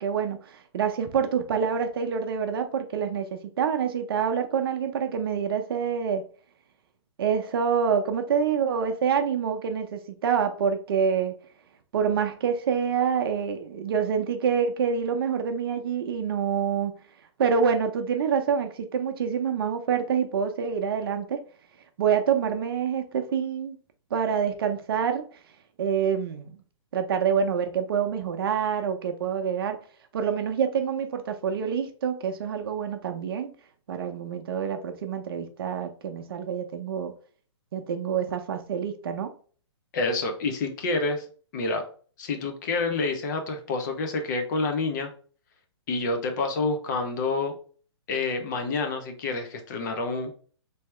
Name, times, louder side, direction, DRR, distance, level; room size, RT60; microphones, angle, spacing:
voice 1, 0.0-6.2 7.2-11.4 11.9-16.9 17.4-21.4 22.0-23.8 24.1-25.2 25.8-26.6 26.9-29.8 30.1-33.5 33.9-37.1 37.7-39.3, right 7 dB, 55° right, 0.6 m, -26 dB
voice 2, 39.9-41.3 41.5-41.8 42.2-45.1 45.9-47.6 48.1-50.3, left 3 dB, 40° left, 0.7 m, -28 dB
3.4 x 2.8 x 3.2 m
hypercardioid pair, 155°, 15 cm